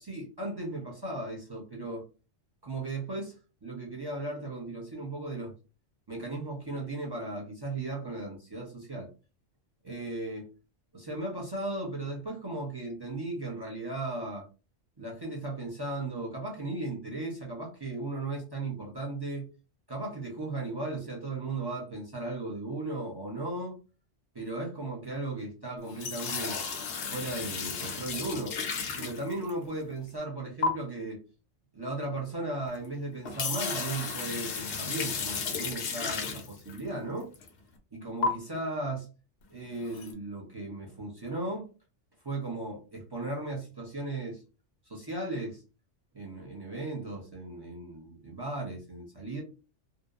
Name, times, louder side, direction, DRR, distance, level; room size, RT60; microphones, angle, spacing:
voice 1, 0.0-2.0 2.6-3.3 3.6-5.5 6.1-9.1 9.8-10.5 10.9-14.4 15.0-19.5 19.9-23.8 24.3-26.6 27.1-28.6 29.0-31.2 31.7-37.3 37.9-39.1 39.5-41.7 42.2-44.4 44.9-45.6 46.1-49.4, right 2 dB, 30° right, -2 dB, 0.5 m, -36 dB
sound 1, 25.8-29.8 30.6-30.7 32.7-32.8 33.1-36.8 37.3-37.5 38.2-38.3 39.8-40.1, left 5 dB, 70° left, 0.8 m, -33 dB
2.7 x 2.0 x 2.3 m, 0.32 s
omnidirectional pair, 1.3 m